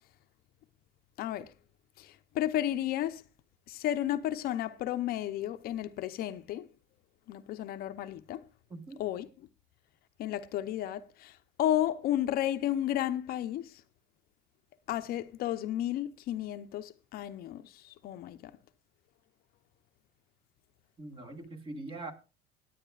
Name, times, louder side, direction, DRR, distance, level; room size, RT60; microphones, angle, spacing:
voice 1, 1.2-1.5 2.0-3.2 3.7-6.7 7.3-8.4 9.0-9.3 10.2-13.8 14.9-18.5, left 12 dB, 55° left, 0.7 m, -33 dB
voice 2, 8.7-9.0 21.0-22.1, right 2 dB, 30° right, 1.8 m, -42 dB
17.0 x 9.4 x 2.4 m
cardioid pair, 115°, 18 cm